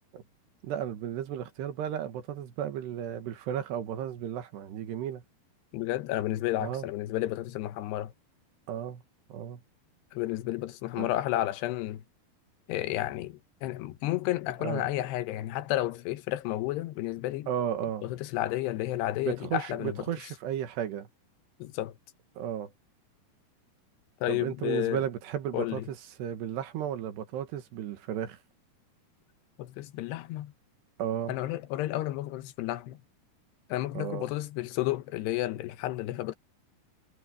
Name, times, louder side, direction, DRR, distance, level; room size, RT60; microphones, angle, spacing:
voice 1, 0.6-5.2 6.6-6.9 8.7-9.0 9.3-9.6 11.0-11.1 14.6-14.9 17.5-18.1 19.3-21.1 22.4-22.7 24.3-28.4 31.0-31.4 33.9-34.3, right 9 dB, 85° right, 3.9 m, -34 dB
voice 2, 5.7-8.1 10.1-12.0 12.7-17.5 18.0-20.0 21.6-21.9 24.2-25.0 25.5-25.9 29.6-30.5 31.3-33.0 33.7-36.3, left 15 dB, 90° left, 3.1 m, -31 dB
omnidirectional pair, 4.7 m